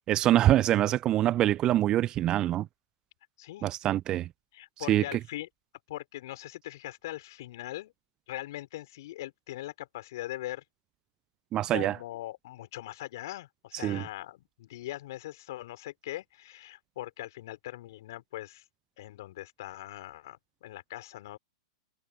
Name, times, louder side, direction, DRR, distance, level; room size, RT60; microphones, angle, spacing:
voice 1, 0.1-2.7 3.6-4.3 4.9-5.2 11.5-12.0 13.8-14.0, right 13 dB, 30° right, 0.4 m, -25 dB
voice 2, 3.4-3.7 4.5-5.5 5.9-7.9 8.3-10.6 11.7-18.6 19.0-21.4, left 15 dB, 55° left, 5.6 m, -41 dB
figure-of-eight pair, 100°, 2 cm